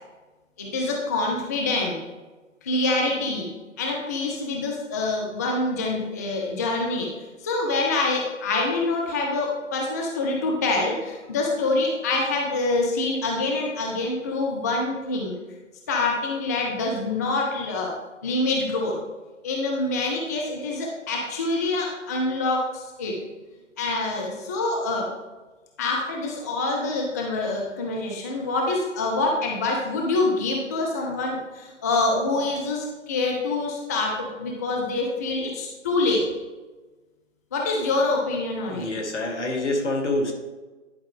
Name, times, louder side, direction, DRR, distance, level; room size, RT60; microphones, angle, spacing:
voice 1, 0.6-2.0 2.6-3.5 3.8-15.3 15.9-17.9 18.2-19.0 19.4-23.2 23.8-25.1 25.8-36.3 37.5-38.9, left 2 dB, 15° left, -1 dB, 0.4 m, -26 dB
voice 2, 38.7-40.3, left 2 dB, 65° left, 2 dB, 1.9 m, -26 dB
11.0 x 4.9 x 3.6 m, 1.2 s
figure-of-eight pair, 130°, 38 cm